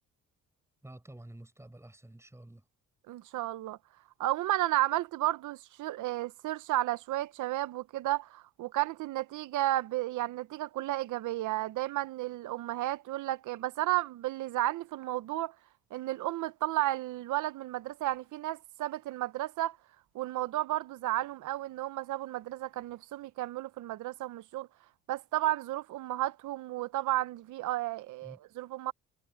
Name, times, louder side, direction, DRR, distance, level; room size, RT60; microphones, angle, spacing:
voice 1, 0.8-2.6 28.2-28.4, right 1 dB, 10° right, 5.8 m, -50 dB
voice 2, 3.1-3.8 4.2-15.5 15.9-19.8 20.1-24.7 25.1-28.9, right 15 dB, 80° right, 0.8 m, -33 dB
cardioid pair, 90°, 30 cm